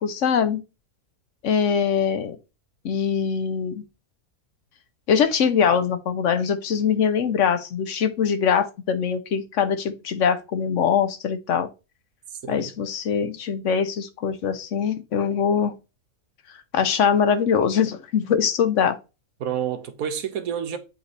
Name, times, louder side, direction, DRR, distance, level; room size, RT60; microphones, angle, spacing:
voice 1, 0.0-0.6 1.4-2.4 2.8-3.8 5.1-11.7 12.5-15.7 16.7-19.0, left 7 dB, 60° left, 1.0 m, -22 dB
voice 2, 12.3-12.7 19.4-20.8, right 8 dB, 70° right, 1.2 m, -29 dB
7.9 x 3.1 x 4.0 m
omnidirectional pair, 1.6 m